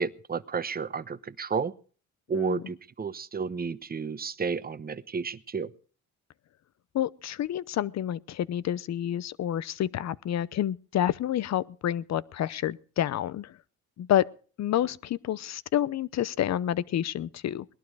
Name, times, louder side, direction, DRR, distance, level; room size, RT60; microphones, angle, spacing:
voice 1, 0.0-1.7 2.3-5.7, right 5 dB, 30° right, 1.0 m, -32 dB
voice 2, 2.3-2.6 6.9-13.6 14.0-14.3 14.6-17.7, left 11 dB, 60° left, 0.8 m, -29 dB
20.0 x 11.5 x 4.8 m
cardioid pair, 90°, 30 cm